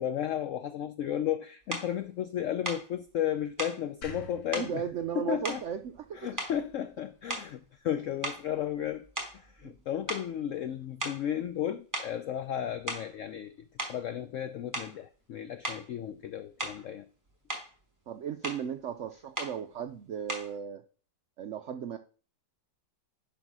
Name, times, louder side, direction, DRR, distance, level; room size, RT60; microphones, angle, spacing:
voice 1, 0.0-4.8 5.1-5.6 6.2-9.0 9.3-13.5 13.9-17.0, left 10 dB, 80° left, 0.7 m, -34 dB
sound 1, 1.7-1.9 2.6-2.9 3.6-3.8 4.5-4.7 5.4-6.1 6.4-6.8 7.3-7.6 8.2-9.8 10.1-10.3 11.0-11.3 11.9-12.2 12.7-13.2 13.8-14.0 14.7-15.0 15.6-15.9 16.6-16.9 17.3-17.7 18.4-18.7 19.4-19.6 20.3-20.6, right 1 dB, 10° right, 2.3 m, -37 dB
sound 2, 4.0-7.2, right 1 dB, 60° left, 1.9 m, -49 dB
voice 2, 4.6-6.3 9.6-9.7 18.1-20.8 21.4-22.0, right 8 dB, 75° right, 0.6 m, -36 dB
10.5 x 4.0 x 6.0 m
omnidirectional pair, 1.9 m